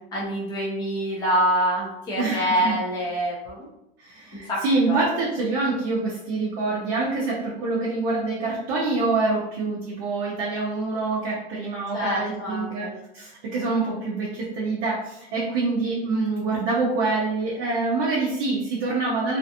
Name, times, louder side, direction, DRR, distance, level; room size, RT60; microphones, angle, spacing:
voice 1, 0.1-3.7 4.5-5.1 11.9-12.9, equal, 15° left, -5 dB, 0.5 m, -26 dB
voice 2, 2.2-2.7 4.0-12.9 13.1-19.4, right 3 dB, 35° right, -6 dB, 0.6 m, -26 dB
2.5 x 2.3 x 2.6 m, 0.86 s
supercardioid pair, 155°, 33 cm